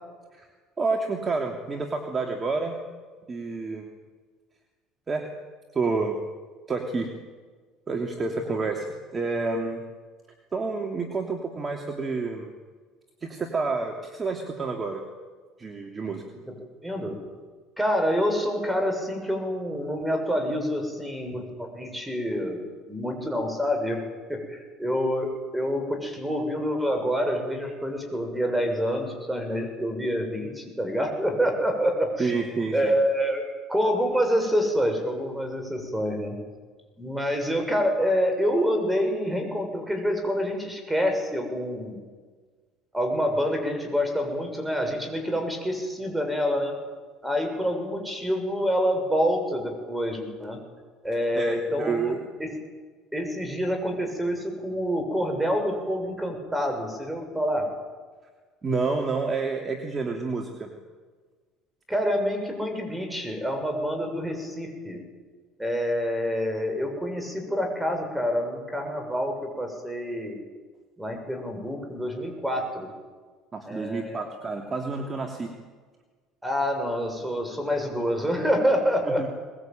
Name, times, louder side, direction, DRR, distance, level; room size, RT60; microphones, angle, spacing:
voice 1, 0.8-2.8 3.3-3.9 5.1-5.3 5.7-6.2 6.7-7.1 7.9-8.9 9.1-9.8 10.5-12.5 13.2-15.0 15.6-16.2 32.2-32.9 51.3-52.2 58.6-60.7 73.5-75.5 79.1-79.3, right 4 dB, 30° right, 3 dB, 3.0 m, -29 dB
voice 2, 16.8-17.3 17.8-24.0 24.3-32.3 32.7-36.4 37.0-42.0 42.9-46.8 47.2-50.6 51.0-52.5 53.1-57.7 61.9-65.0 65.6-70.4 71.0-72.9 73.7-74.3 76.4-79.3, equal, 5° right, 4 dB, 7.0 m, -27 dB
22.5 x 20.5 x 9.2 m, 1.4 s
supercardioid pair, 100°, 0 cm